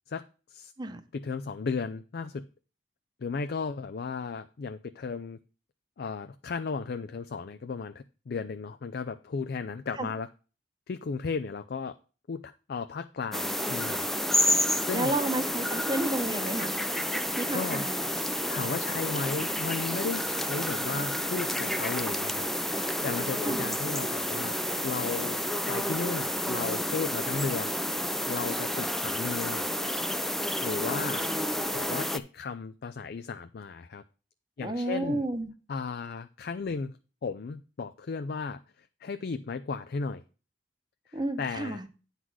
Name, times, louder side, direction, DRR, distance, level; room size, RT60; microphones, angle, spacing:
voice 1, 1.1-2.4 3.2-5.4 6.0-10.3 10.9-11.9 12.3-14.1 14.8-15.1 17.5-17.9 18.5-24.6 24.8-25.4 25.7-27.7 28.3-29.6 30.6-31.3 31.7-34.0 34.6-35.3 35.7-36.9 37.2-40.2 41.1-41.9, left 5 dB, 60° left, 0.4 m, -35 dB
sound 1, 13.3-32.2, equal, ahead, 0.4 m, -30 dB
voice 2, 14.9-16.8 17.4-18.0 23.4-23.7 34.6-35.5 41.1-41.9, right 2 dB, 25° right, 0.9 m, -31 dB
9.5 x 4.1 x 6.2 m
head